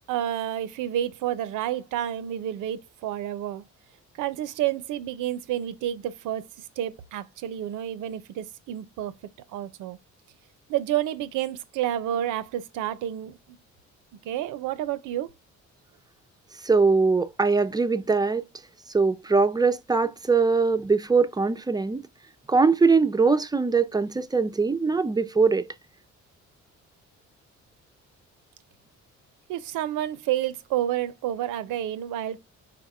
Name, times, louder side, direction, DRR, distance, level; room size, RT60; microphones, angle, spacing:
voice 1, 0.1-3.6 4.2-9.1 9.5-10.0 10.7-13.6 14.2-15.3 29.5-32.4, right 12 dB, 90° right, 0.6 m, -30 dB
voice 2, 16.6-18.4 18.9-22.0 22.5-25.7, right 4 dB, 15° right, 0.4 m, -22 dB
4.7 x 2.2 x 4.7 m
cardioid pair, 90°, 30 cm